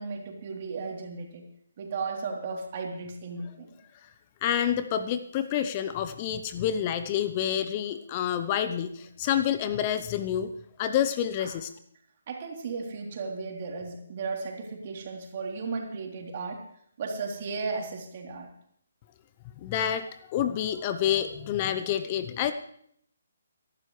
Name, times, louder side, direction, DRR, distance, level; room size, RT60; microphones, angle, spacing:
voice 1, 0.0-1.5 1.8-3.7 11.4-11.5 12.3-16.6 17.0-18.5, right 4 dB, 45° right, 1 dB, 3.4 m, -35 dB
voice 2, 4.4-10.5 10.8-11.7 19.6-22.5, left 10 dB, 30° left, 11 dB, 0.8 m, -28 dB
23.0 x 12.0 x 3.3 m, 0.68 s
figure-of-eight pair, 140°, 0 cm